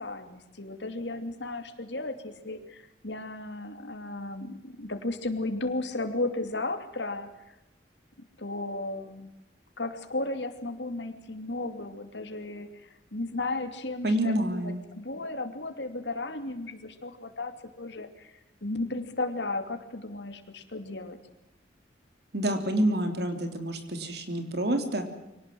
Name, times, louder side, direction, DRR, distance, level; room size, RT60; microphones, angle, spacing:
voice 1, 0.0-7.3 8.4-9.3 9.8-14.3 14.6-18.3 18.6-21.2, left 2 dB, 70° left, 7 dB, 2.7 m, -34 dB
voice 2, 14.0-14.8 22.3-25.1, right 1 dB, 60° right, 7 dB, 3.5 m, -28 dB
24.0 x 18.5 x 7.7 m, 0.93 s
head